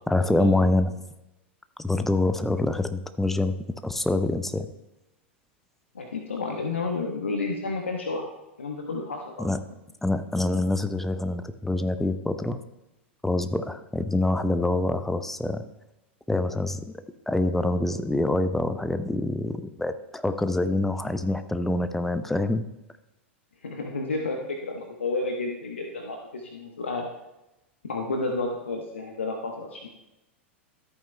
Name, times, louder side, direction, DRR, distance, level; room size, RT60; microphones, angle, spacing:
voice 1, 0.1-0.9 1.8-3.5 3.8-4.7 9.4-9.6 10.0-12.6 13.2-15.6 16.3-16.8 17.3-22.6, left 2 dB, 5° left, 11 dB, 0.5 m, -25 dB
voice 2, 5.9-9.4 23.6-27.1 27.8-29.9, left 3 dB, 75° left, 2 dB, 1.0 m, -31 dB
13.5 x 8.3 x 2.2 m, 0.95 s
figure-of-eight pair, 90°, 6 cm